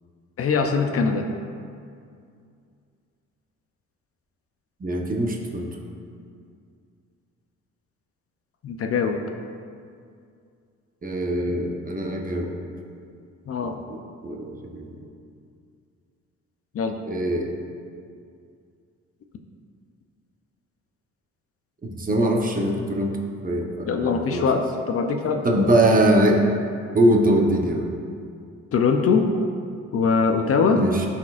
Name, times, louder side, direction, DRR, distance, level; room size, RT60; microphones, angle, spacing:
voice 1, 0.4-1.3 8.6-9.2 13.5-13.7 16.7-17.0 23.9-25.8 28.7-29.3 29.9-30.8, left 5 dB, 50° left, 5 dB, 0.6 m, -22 dB
voice 2, 4.8-5.7 11.0-12.5 14.2-15.0 17.1-17.5 21.8-23.2 23.4-24.5 25.4-26.5 26.9-27.8 30.8-31.1, right 1 dB, 30° right, 0 dB, 0.9 m, -22 dB
12.5 x 4.4 x 2.4 m, 2.3 s
cardioid pair, 90°, 30 cm